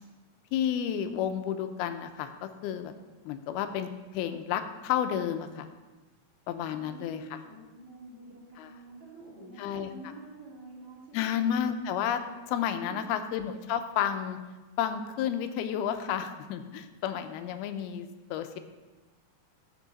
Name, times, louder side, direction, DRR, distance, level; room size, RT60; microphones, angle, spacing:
voice 1, 0.5-2.9 3.3-5.7 6.5-7.2 8.6-8.7 9.6-9.9 11.1-12.2 12.5-14.4 14.8-18.6, left 9 dB, 85° left, 8 dB, 2.6 m, -31 dB
voice 2, 6.7-11.5 12.8-13.3, right 2 dB, 40° right, -6 dB, 3.3 m, -48 dB
14.5 x 6.5 x 4.0 m, 1.2 s
omnidirectional pair, 4.4 m